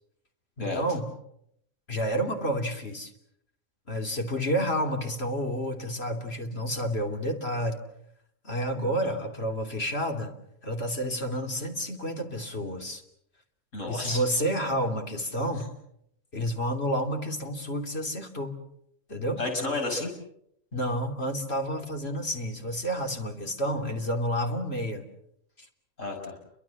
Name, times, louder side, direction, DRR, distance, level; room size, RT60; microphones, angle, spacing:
voice 1, 0.6-1.0 1.9-3.1 3.9-7.8 8.4-10.3 10.6-13.0 13.9-15.7 16.3-18.6 19.1-19.4 20.7-25.0, equal, 55° left, 4 dB, 3.3 m, -30 dB
voice 2, 13.7-14.2 19.4-20.1 26.0-26.4, left 2 dB, 85° left, 2 dB, 6.4 m, -31 dB
29.5 x 24.0 x 7.2 m, 0.74 s
omnidirectional pair, 1.3 m